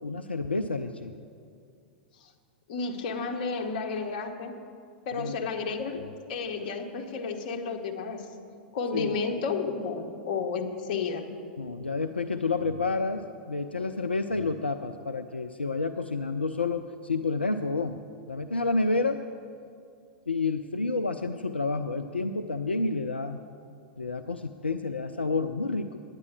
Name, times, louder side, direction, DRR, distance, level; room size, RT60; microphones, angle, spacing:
voice 1, 0.0-1.1 5.2-5.4 8.9-9.1 11.6-18.0 18.3-19.3 20.3-23.4 24.0-26.0, left 3 dB, 85° left, 10 dB, 0.4 m, -29 dB
voice 2, 2.7-4.5 5.0-8.3 8.7-11.3, left 4 dB, 50° left, 4 dB, 1.4 m, -32 dB
9.7 x 9.6 x 7.2 m, 2.4 s
figure-of-eight pair, 95°, 6 cm